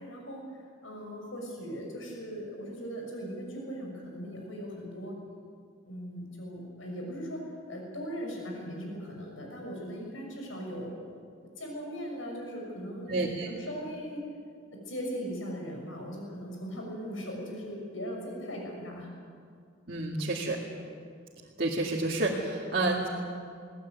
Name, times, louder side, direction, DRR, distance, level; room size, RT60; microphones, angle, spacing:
voice 1, 0.0-5.1 5.8-10.9 11.6-14.3 14.9-19.1, equal, 90° left, 0 dB, 6.3 m, -39 dB
voice 2, 13.1-13.5 19.9-20.6 21.6-23.1, right 2 dB, 50° right, -3 dB, 2.3 m, -29 dB
21.5 x 18.5 x 9.4 m, 2.2 s
head